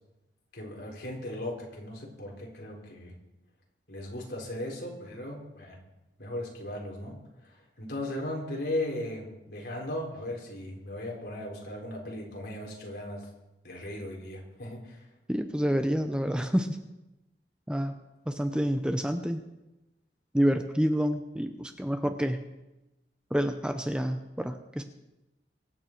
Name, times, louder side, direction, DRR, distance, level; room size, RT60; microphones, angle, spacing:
voice 1, 0.5-3.1 3.9-5.8 6.2-13.3 13.6-15.1, left 1 dB, 65° left, -1 dB, 3.8 m, -37 dB
voice 2, 15.3-16.8 17.7-18.0 18.3-19.4 20.3-22.4 23.3-24.8, equal, 5° right, 7 dB, 0.7 m, -28 dB
23.5 x 8.7 x 4.5 m, 0.98 s
head